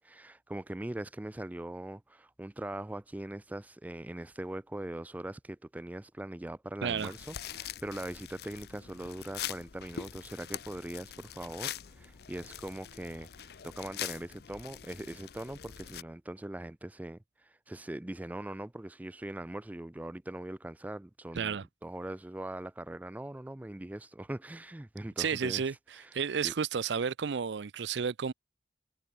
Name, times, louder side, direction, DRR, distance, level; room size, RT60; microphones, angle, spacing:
voice 1, 0.0-21.6 21.8-25.6 26.4-26.5, right 1 dB, 10° right, 0.3 m, -41 dB
sound 1, 6.8-16.0, left 10 dB, 60° left, 0.6 m, -43 dB
voice 2, 6.8-7.1 21.3-21.6 25.2-25.7 26.1-28.3, right 6 dB, 85° right, 0.5 m, -31 dB
head